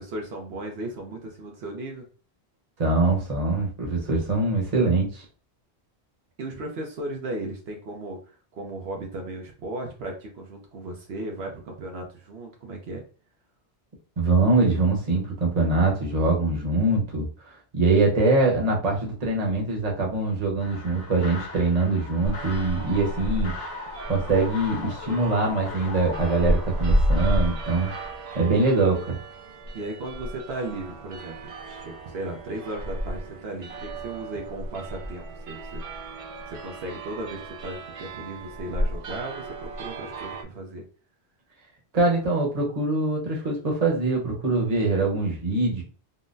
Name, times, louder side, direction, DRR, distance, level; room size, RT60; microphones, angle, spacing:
voice 1, 0.0-2.1 6.4-13.0 29.7-36.2 36.5-40.8, right 2 dB, 75° right, 1 dB, 0.9 m, -36 dB
voice 2, 2.8-5.2 14.2-17.3 17.7-23.6 24.1-27.9 28.3-29.2 41.9-45.8, right 3 dB, 40° right, -1 dB, 1.0 m, -23 dB
sound 1, 20.6-28.1, left 3 dB, 65° left, 1.2 m, -39 dB
sound 2, 22.2-40.4, equal, 55° right, 0.4 m, -32 dB
3.8 x 2.1 x 2.5 m, 0.40 s
omnidirectional pair, 1.1 m